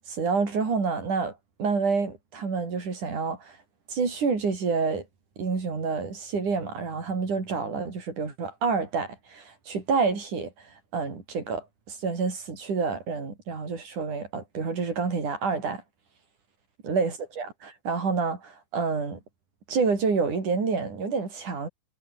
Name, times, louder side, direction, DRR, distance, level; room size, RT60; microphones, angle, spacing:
voice 1, 0.1-3.5 3.9-5.0 5.4-10.5 10.9-15.8 16.8-19.2 19.7-21.7, right 5 dB, 70° right, 6.7 m, -28 dB
omnidirectional pair, 3.7 m